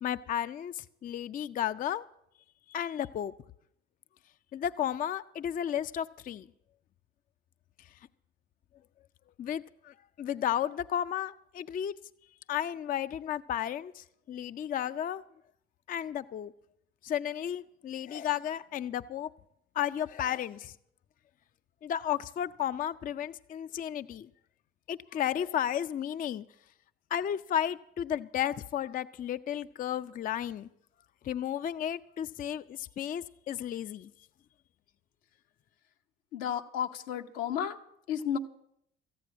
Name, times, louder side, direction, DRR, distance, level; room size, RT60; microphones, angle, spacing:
voice 1, 0.0-2.0 2.7-3.3 4.5-6.5 9.4-11.9 12.5-15.2 15.9-16.5 17.0-19.3 19.8-20.7 21.8-24.3 24.9-26.4 27.1-30.7 31.2-34.1, left 10 dB, 30° left, 13 dB, 0.4 m, -33 dB
voice 2, 36.3-37.8 38.1-38.4, left 9 dB, 75° left, 6 dB, 0.9 m, -32 dB
14.5 x 9.4 x 6.2 m, 0.76 s
hypercardioid pair, 55°, 31 cm